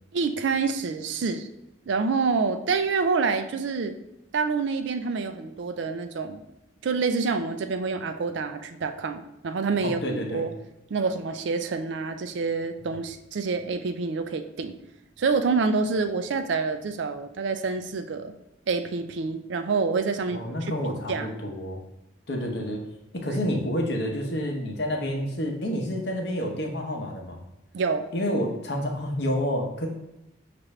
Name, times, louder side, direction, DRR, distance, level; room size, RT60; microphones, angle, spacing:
voice 1, 0.1-1.5 1.9-3.9 4.3-6.4 6.8-10.5 10.9-14.8 15.2-18.3 18.7-20.7 21.1-21.3 27.7-28.1, right 4 dB, 70° right, 8 dB, 0.4 m, -27 dB
voice 2, 9.8-10.5 20.3-21.8 22.3-22.8 23.1-27.4 28.1-29.9, equal, 55° left, 1 dB, 0.8 m, -29 dB
5.9 x 2.5 x 3.2 m, 0.93 s
head